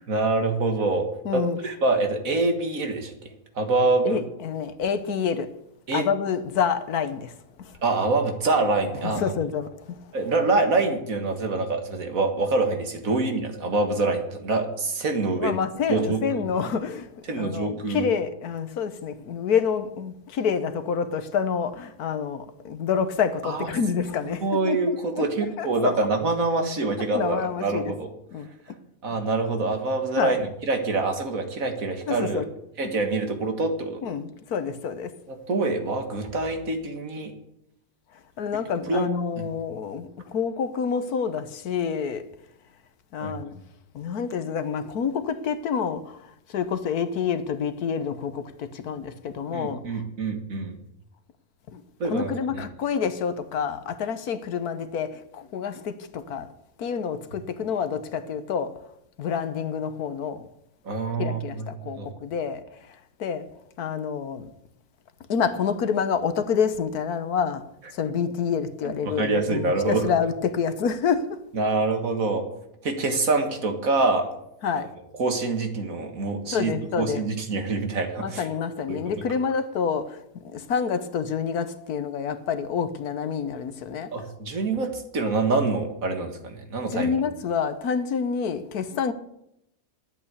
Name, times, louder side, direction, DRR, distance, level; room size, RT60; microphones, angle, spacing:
voice 1, 0.1-1.1 1.3-4.2 5.9-6.1 7.8-9.3 10.1-15.5 15.9-16.2 17.3-18.1 23.4-23.7 24.3-28.1 29.0-30.4 30.6-32.4 32.8-34.0 35.3-37.3 38.9-39.1 39.4-39.5 43.2-43.3 49.5-50.8 52.0-52.6 60.8-61.7 62.0-62.1 69.1-70.1 71.5-72.4 72.8-74.3 74.7-74.9 75.2-78.4 78.9-79.0 84.1-87.1, right 3 dB, 60° right, 2.1 m, -25 dB
voice 2, 1.2-1.6 4.0-5.5 5.9-7.3 7.6-7.8 9.1-10.1 15.4-25.3 25.6-26.0 27.0-27.9 28.3-28.5 30.2-30.4 32.1-32.5 32.8-32.9 34.0-35.1 38.4-42.3 43.1-43.6 43.9-50.0 51.7-56.5 56.8-58.8 59.2-60.5 61.2-63.5 63.8-64.5 65.3-67.6 67.9-71.4 74.6-74.9 76.5-77.2 77.5-77.6 78.2-84.1 86.9-89.1, left 6 dB, 75° left, 1.4 m, -28 dB
11.0 x 8.8 x 8.2 m
omnidirectional pair, 1.7 m